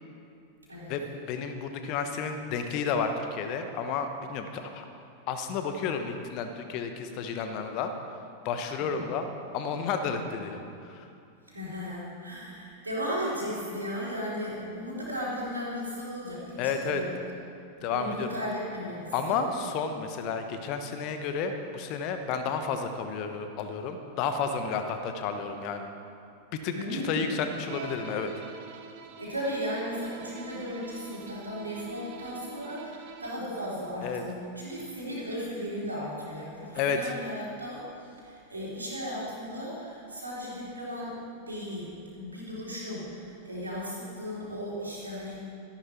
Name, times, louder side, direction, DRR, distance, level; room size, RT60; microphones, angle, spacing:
voice 1, 0.9-4.8 5.3-7.9 8.4-9.3 9.5-10.6 10.9-11.0 16.6-17.0 17.8-18.3 19.1-25.9 26.6-28.3 34.0-34.2 36.7-37.1, left 5 dB, 40° left, 7 dB, 1.1 m, -31 dB
voice 2, 8.8-9.1 10.0-10.3 11.5-17.2 17.9-19.5 26.7-27.4 29.2-41.2 41.5-45.4, equal, 80° right, -6 dB, 3.6 m, -36 dB
Bowed string instrument, 27.6-33.6, right 5 dB, 50° right, 1.0 m, -45 dB
13.5 x 11.5 x 4.5 m, 2.5 s
figure-of-eight pair, 90°, 0 cm